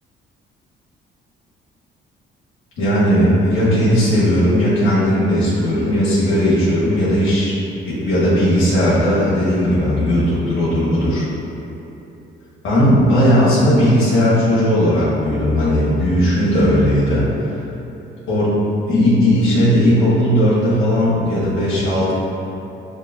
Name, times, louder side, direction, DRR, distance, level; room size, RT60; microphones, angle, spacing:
voice 1, 2.8-7.6 7.8-11.2 12.6-17.3 18.3-18.5 18.9-22.1, equal, 85° left, -9 dB, 1.2 m, -16 dB
6.7 x 2.8 x 2.4 m, 3.0 s
cardioid pair, 90°, 20 cm